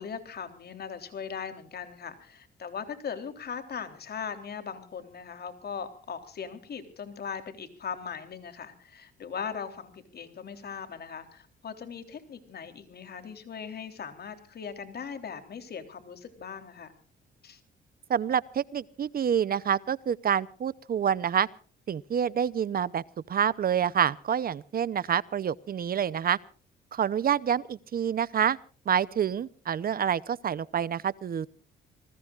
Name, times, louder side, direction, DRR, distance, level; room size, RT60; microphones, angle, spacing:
voice 1, 0.0-16.9 17.4-17.6, left 6 dB, 55° left, 8 dB, 3.5 m, -39 dB
voice 2, 18.1-21.5 21.9-26.4 26.9-28.6 28.9-31.5, right 8 dB, 50° right, 19 dB, 0.7 m, -27 dB
27.5 x 20.5 x 2.5 m, 0.41 s
cardioid pair, 90°, 20 cm